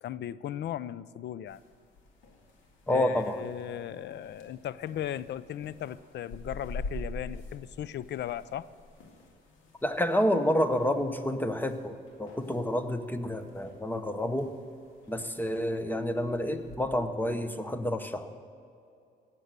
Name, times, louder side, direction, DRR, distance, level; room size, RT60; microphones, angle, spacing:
voice 1, 0.0-1.6 2.9-8.7, left 11 dB, 60° left, 18 dB, 0.5 m, -37 dB
sound 1, 1.5-16.8, left 2 dB, 90° left, 2.1 m, -47 dB
voice 2, 2.9-3.4 9.8-14.5 15.1-18.3, left 1 dB, 10° left, 9 dB, 1.0 m, -29 dB
18.0 x 7.6 x 6.7 m, 2.5 s
cardioid pair, 90°, 20 cm